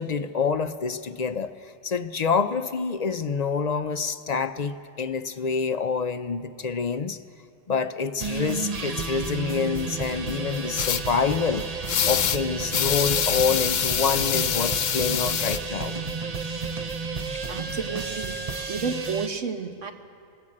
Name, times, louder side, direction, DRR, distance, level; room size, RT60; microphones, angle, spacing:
voice 1, 0.0-7.2 7.7-11.7 12.0-16.0 17.3-17.4, left 5 dB, 45° left, 10 dB, 0.6 m, -27 dB
sound 1, 8.2-19.3, right 4 dB, 40° right, 0.7 m, -32 dB
sound 2, 10.8-11.0 11.9-12.4 12.7-15.6, left 9 dB, 85° left, 1.1 m, -25 dB
voice 2, 17.5-18.4 18.7-19.9, right 5 dB, 80° right, 5 dB, 1.7 m, -31 dB
20.0 x 19.5 x 8.6 m, 2.4 s
omnidirectional pair, 1.3 m